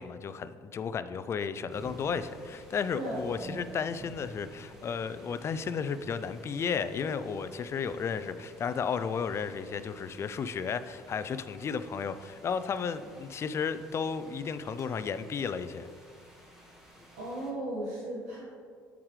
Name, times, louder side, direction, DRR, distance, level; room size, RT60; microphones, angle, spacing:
voice 1, 0.0-15.9, left 6 dB, 40° left, 12 dB, 0.3 m, -33 dB
sound 1, 1.7-17.5, equal, 5° right, 1.5 m, -54 dB
voice 2, 2.9-3.6 17.2-18.4, right 1 dB, 90° right, -9 dB, 1.4 m, -36 dB
7.3 x 4.7 x 3.2 m, 2.1 s
supercardioid pair, 80°, 7 cm